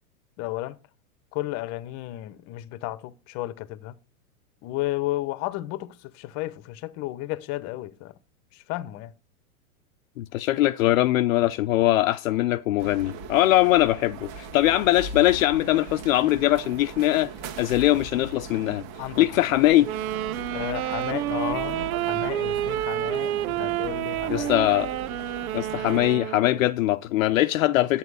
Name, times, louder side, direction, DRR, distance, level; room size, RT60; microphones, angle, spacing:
voice 1, 0.4-0.8 1.3-4.0 4.6-8.1 8.5-9.1 19.0-19.3 20.5-24.5, left 16 dB, 40° left, 1.0 m, -33 dB
voice 2, 10.2-17.3 17.6-18.8 19.2-19.9 24.3-24.9 25.5-28.0, left 15 dB, 65° left, 0.8 m, -21 dB
sound 1, 12.8-26.2, right 5 dB, 50° right, 2.0 m, -39 dB
Wind instrument woodwind instrument, 19.8-26.7, right 13 dB, 70° right, 0.8 m, -29 dB
11.0 x 9.1 x 4.9 m
hypercardioid pair, 125°, 44 cm